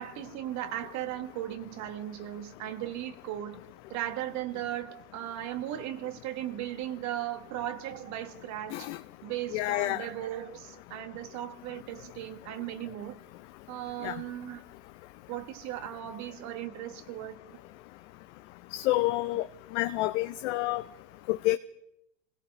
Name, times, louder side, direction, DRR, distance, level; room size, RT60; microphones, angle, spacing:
voice 1, 0.0-3.6 3.9-8.9 9.2-13.2 13.7-14.6 15.3-17.4 19.3-19.5, right 12 dB, 50° right, 11 dB, 1.4 m, -37 dB
voice 2, 9.5-10.1 14.0-14.1 18.7-19.4 19.7-20.8 21.3-21.6, left 18 dB, 65° left, 10 dB, 0.6 m, -28 dB
26.0 x 16.5 x 3.3 m, 0.88 s
supercardioid pair, 110°, 37 cm